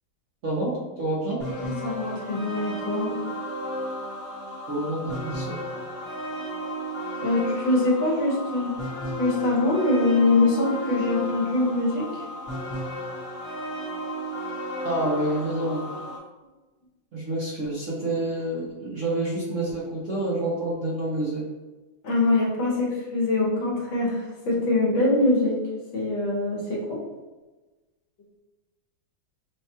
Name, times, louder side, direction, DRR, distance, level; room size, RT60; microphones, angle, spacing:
voice 1, 0.4-1.4 4.7-5.6 14.8-15.9 17.1-21.4, right 1 dB, 55° right, -6 dB, 0.8 m, -28 dB
sound 1, 1.4-16.2, equal, 30° left, 0.8 m, -34 dB
voice 2, 1.5-3.1 7.2-8.8 9.2-12.2 22.0-25.6 25.9-27.0, left 2 dB, 75° left, -4 dB, 1.9 m, -23 dB
6.3 x 2.3 x 2.8 m, 1.2 s
omnidirectional pair, 2.1 m